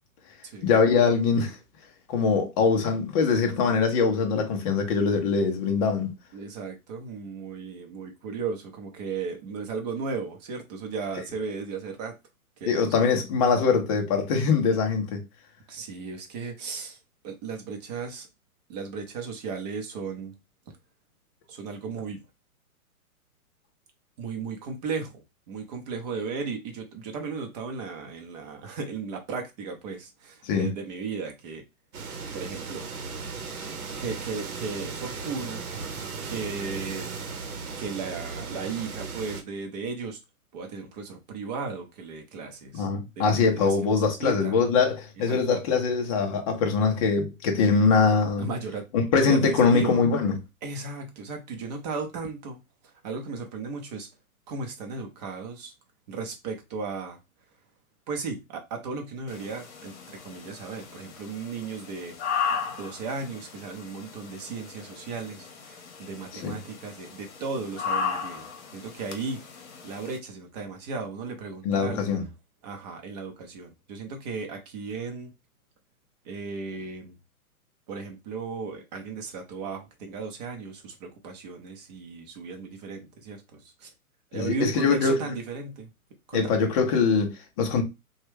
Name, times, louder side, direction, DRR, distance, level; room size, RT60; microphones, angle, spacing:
voice 1, 0.6-1.6 2.1-6.1 12.7-15.2 30.5-30.7 42.7-48.5 48.9-50.3 66.4-66.6 71.6-72.2 84.3-85.2 86.3-87.8, left 5 dB, 25° left, 0.5 m, -23 dB
voice 2, 6.3-12.1 12.6-12.9 15.7-17.0 17.2-18.3 18.7-20.3 21.5-22.2 24.2-31.6 32.3-32.9 34.0-35.7 36.2-37.1 37.8-40.2 40.5-42.9 43.2-43.8 44.1-44.6 45.3-45.6 48.4-48.8 49.1-50.0 50.6-54.1 54.5-55.7 56.1-57.2 58.1-59.9 60.2-62.1 62.6-69.4 69.8-72.0 72.6-75.3 76.2-77.2 77.9-83.9 84.3-85.9 86.3-86.5, right 4 dB, 30° right, 0.7 m, -35 dB
sound 1, 31.9-39.4, right 4 dB, 75° right, 0.9 m, -36 dB
sound 2, 59.3-70.2, left 6 dB, 50° left, 0.9 m, -36 dB
3.0 x 2.3 x 3.2 m
hypercardioid pair, 130°, 44 cm